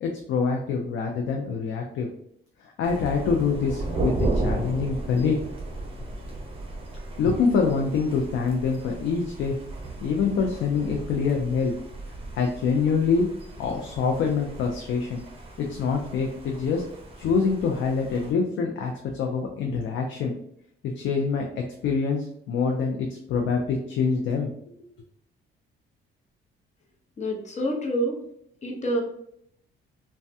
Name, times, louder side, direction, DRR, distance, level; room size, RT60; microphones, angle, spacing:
voice 1, 0.0-2.1 2.6-5.4 7.2-9.6 10.0-11.7 12.3-13.3 13.6-15.2 15.6-16.8 17.2-20.3 20.8-24.5, left 5 dB, 70° left, 2 dB, 0.5 m, -25 dB
Thunder, 2.8-18.3, right 2 dB, 30° right, 0.7 m, -35 dB
voice 2, 27.2-28.2 28.6-29.0, right 1 dB, 35° left, 0 dB, 0.8 m, -27 dB
3.2 x 2.2 x 2.7 m, 0.71 s
cardioid pair, 90°, 20 cm